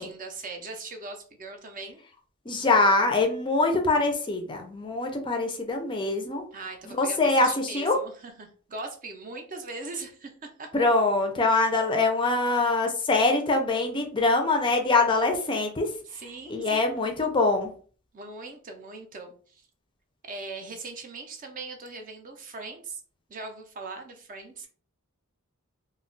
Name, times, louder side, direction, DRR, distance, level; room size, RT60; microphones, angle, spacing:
voice 1, 0.0-2.0 6.5-10.9 16.1-16.9 18.1-19.7 20.2-23.0 23.3-24.7, right 3 dB, 40° right, 5 dB, 0.5 m, -40 dB
voice 2, 2.5-6.4 6.9-8.0 10.7-15.9 16.5-17.7, left 3 dB, 20° left, 4 dB, 0.4 m, -24 dB
2.2 x 2.1 x 3.7 m, 0.43 s
head